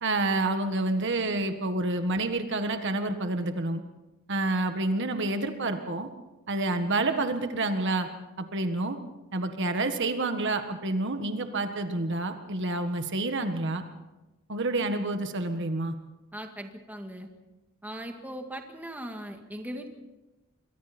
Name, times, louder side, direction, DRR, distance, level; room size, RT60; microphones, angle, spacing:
voice 1, 0.0-3.8 4.3-6.1 6.5-8.1 8.4-9.0 9.3-13.8 14.5-15.9, right 2 dB, 55° right, 7 dB, 1.6 m, -28 dB
voice 2, 16.3-17.3 17.8-19.9, equal, 10° right, 3 dB, 2.0 m, -39 dB
27.5 x 23.5 x 4.4 m, 1.0 s
head